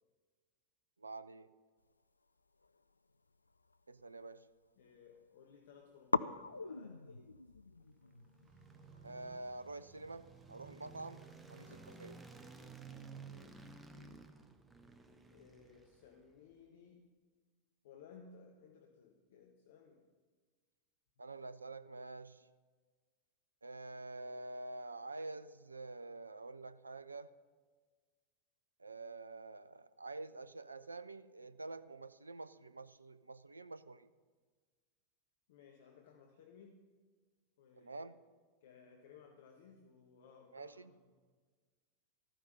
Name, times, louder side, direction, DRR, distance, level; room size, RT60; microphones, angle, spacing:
voice 1, 1.0-1.5 3.9-4.5 9.0-12.2 21.2-22.5 23.6-27.3 28.8-34.1 37.8-38.2 40.5-40.9, right 2 dB, 80° right, 15 dB, 0.5 m, -48 dB
sound 1, 2.5-4.3 4.6-5.3 5.5-5.6 6.1-12.9, left 3 dB, 80° left, 0.4 m, -44 dB
voice 2, 4.8-7.3 13.0-13.7 15.3-17.1 17.8-20.1 35.5-36.8 37.6-38.0 38.6-41.2, left 6 dB, 55° left, 4 dB, 1.3 m, -60 dB
sound 2, 7.9-16.3, right 4 dB, 10° right, 1.1 m, -55 dB
sound 3, 8.4-13.4, right 5 dB, 40° right, 2.0 m, -67 dB
14.0 x 13.5 x 5.4 m, 1.5 s
figure-of-eight pair, 90°, 0 cm